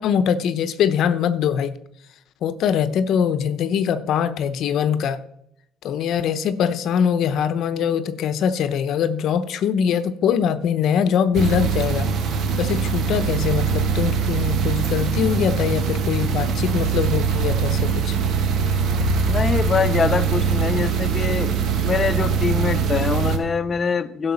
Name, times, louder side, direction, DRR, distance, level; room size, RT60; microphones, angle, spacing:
voice 1, 0.0-1.8 2.4-5.2 5.8-18.2, left 8 dB, 60° left, 13 dB, 0.8 m, -22 dB
sound 1, 11.3-23.4, right 6 dB, 60° right, 1.8 m, -22 dB
voice 2, 19.2-21.5 21.8-24.3, left 5 dB, 30° left, 8 dB, 0.7 m, -23 dB
12.0 x 5.8 x 7.1 m, 0.77 s
cardioid pair, 110°, 0 cm